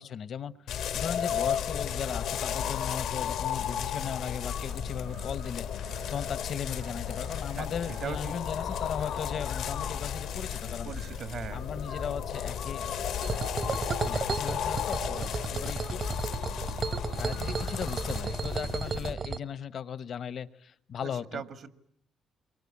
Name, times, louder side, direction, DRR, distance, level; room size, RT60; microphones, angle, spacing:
voice 1, 0.0-10.9 11.5-12.8 13.5-16.0 17.2-21.4, left 8 dB, 60° left, 15 dB, 1.0 m, -37 dB
sound 1, 0.7-19.1, left 9 dB, 80° left, 1.2 m, -34 dB
sound 2, 1.6-18.8, right 7 dB, 90° right, 2.1 m, -48 dB
voice 2, 7.6-8.3 10.8-11.6 21.0-21.7, right 6 dB, 65° right, 9 dB, 2.0 m, -39 dB
sound 3, 13.2-19.4, right 5 dB, 45° right, 1.1 m, -34 dB
28.5 x 23.5 x 8.6 m, 0.71 s
cardioid pair, 90°, 0 cm